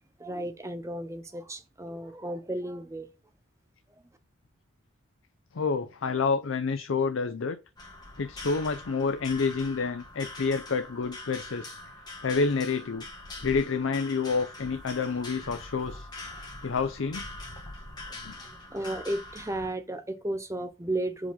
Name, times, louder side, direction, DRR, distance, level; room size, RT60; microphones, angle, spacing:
voice 1, 0.2-3.1 18.4-21.3, right 1 dB, 15° right, 0.6 m, -34 dB
voice 2, 5.5-7.6 8.2-11.8 12.2-13.0 13.4-16.1 16.6-17.2 18.2-18.3, left 4 dB, 65° left, 0.5 m, -28 dB
sound 1, 7.8-19.7, left 2 dB, 20° left, 1.8 m, -43 dB
5.1 x 3.7 x 5.4 m
head